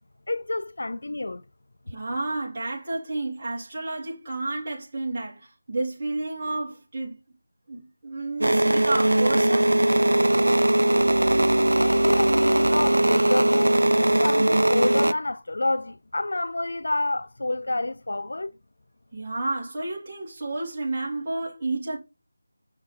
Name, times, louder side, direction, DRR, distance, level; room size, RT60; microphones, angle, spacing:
voice 1, 0.3-1.4 11.8-18.5, left 2 dB, 65° left, 0.4 m, -28 dB
voice 2, 1.9-7.2 7.7-9.8 19.1-22.0, right 2 dB, 25° right, 3.4 m, -31 dB
sound 1, 8.4-15.1, right 1 dB, 85° right, 0.4 m, -20 dB
6.4 x 6.0 x 3.7 m
figure-of-eight pair, 170°, 0 cm